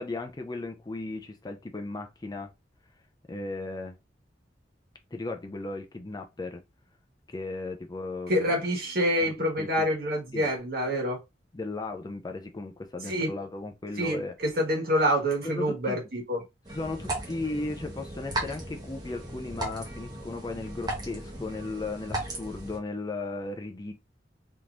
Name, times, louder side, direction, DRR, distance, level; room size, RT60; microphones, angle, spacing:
voice 1, 0.0-2.5 3.3-4.0 5.1-6.6 7.3-8.5 9.2-9.9 10.3-10.5 11.5-14.3 15.4-16.1 16.7-23.9, left 2 dB, 20° left, 0.4 m, -36 dB
voice 2, 8.3-11.2 13.1-13.3 14.0-14.2 14.6-16.4, equal, 55° right, 1.4 m, -26 dB
sound 1, 16.7-22.8, right 1 dB, 25° right, 1.0 m, -36 dB
3.5 x 2.9 x 2.4 m
head